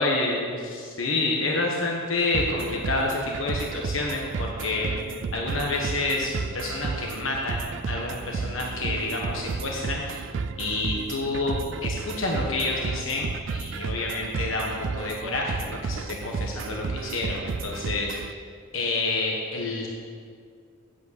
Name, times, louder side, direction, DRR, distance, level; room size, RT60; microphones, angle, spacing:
voice 1, 0.0-4.9 5.3-10.2 10.6-18.2 18.7-19.9, left 2 dB, 85° left, -1 dB, 1.2 m, -28 dB
sound 1, 2.3-18.3, right 5 dB, 65° right, 0.4 m, -32 dB
8.3 x 8.2 x 8.0 m, 2.2 s
head